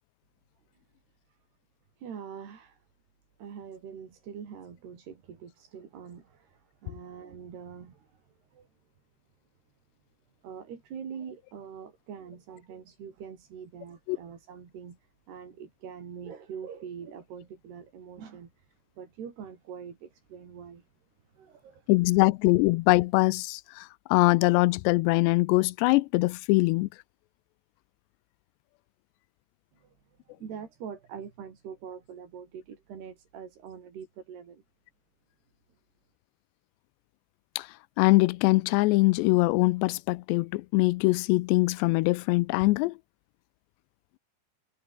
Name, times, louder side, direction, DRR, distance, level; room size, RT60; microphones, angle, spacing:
voice 1, 2.0-2.8 3.4-8.7 10.4-15.0 15.3-20.9 21.3-21.9 29.8-29.9 30.3-34.6, right 7 dB, 70° right, 5.9 m, -44 dB
voice 2, 21.9-26.9 37.6-37.7 38.0-42.9, left 22 dB, 85° left, 2.8 m, -23 dB
omnidirectional pair, 4.9 m